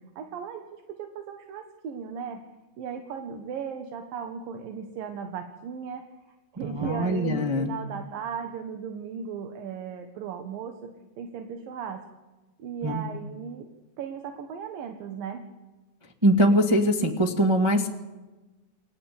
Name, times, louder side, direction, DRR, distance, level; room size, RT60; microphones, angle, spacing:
voice 1, 0.0-2.4 2.8-6.0 6.5-12.0 12.6-13.7 14.0-15.4, right 7 dB, 65° right, 5 dB, 2.9 m, -36 dB
voice 2, 6.6-7.7 12.8-13.0 16.2-17.9, equal, 20° right, 1 dB, 0.7 m, -22 dB
29.5 x 22.0 x 8.7 m, 1.2 s
omnidirectional pair, 4.8 m